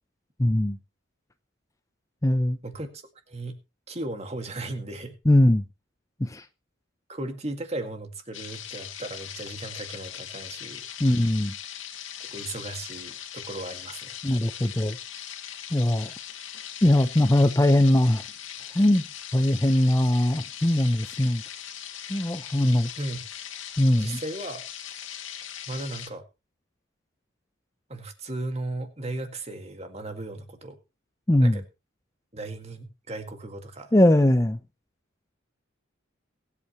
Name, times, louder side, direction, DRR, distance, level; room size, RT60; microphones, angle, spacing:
voice 1, 0.4-0.8 2.2-2.6 5.3-5.6 6.2-6.4 11.0-11.5 14.2-15.0 15.7-16.1 16.8-18.2 18.7-19.0 19.3-21.4 22.1-22.9 23.8-24.2 31.3-31.6 33.9-34.6, left 1 dB, 15° left, 0.6 m, -21 dB
voice 2, 2.6-3.6 3.9-5.1 7.1-10.9 12.2-14.2 23.0-23.3 24.0-24.6 25.7-26.2 27.9-30.8 31.4-31.6 32.3-33.9, right 2 dB, 30° right, 2.1 m, -36 dB
sound 1, 8.3-26.1, left 10 dB, 75° left, 2.2 m, -40 dB
22.5 x 8.5 x 3.1 m
head